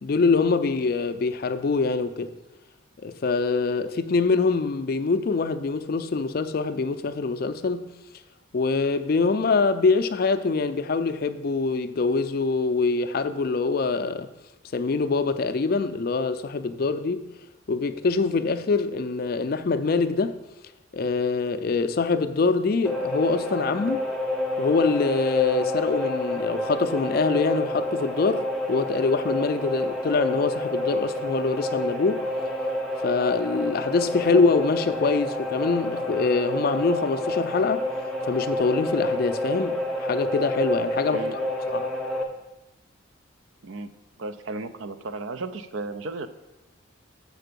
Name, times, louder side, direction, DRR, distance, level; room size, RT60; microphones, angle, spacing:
voice 1, 0.0-2.3 3.0-7.9 8.5-14.3 14.7-17.3 17.7-20.4 20.9-24.0 24.6-32.3 33.0-37.9 38.2-41.2 41.7-41.9, left 4 dB, 50° left, 0.4 m, -24 dB
sound 1, 22.8-42.2, left 1 dB, ahead, 0.6 m, -29 dB
voice 2, 44.2-46.3, right 3 dB, 70° right, 0.5 m, -34 dB
6.8 x 4.5 x 6.7 m
head